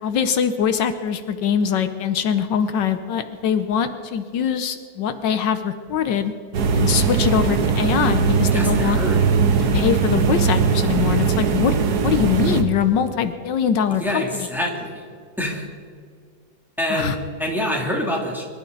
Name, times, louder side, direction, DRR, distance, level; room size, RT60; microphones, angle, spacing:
voice 1, 0.0-6.3 6.7-9.0 9.6-11.8 12.0-14.5 16.9-17.2, left 8 dB, 75° left, 9 dB, 1.5 m, -22 dB
sound 1, 6.5-12.6, right 5 dB, 65° right, 1.5 m, -20 dB
voice 2, 8.5-9.2 14.0-15.0 15.4-15.6 16.8-18.4, equal, ahead, -2 dB, 2.8 m, -26 dB
25.0 x 12.5 x 4.0 m, 2.1 s
omnidirectional pair, 1.9 m